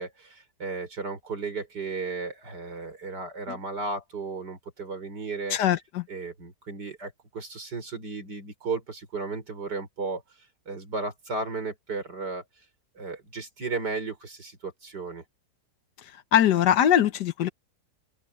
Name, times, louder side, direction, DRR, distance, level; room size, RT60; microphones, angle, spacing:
voice 1, 0.0-5.6 6.1-10.2 10.7-12.4 13.0-15.2, right 3 dB, 85° right, 5.5 m, -34 dB
voice 2, 5.5-6.0 16.3-17.5, left 10 dB, 90° left, 1.6 m, -22 dB
open air
omnidirectional pair, 1.8 m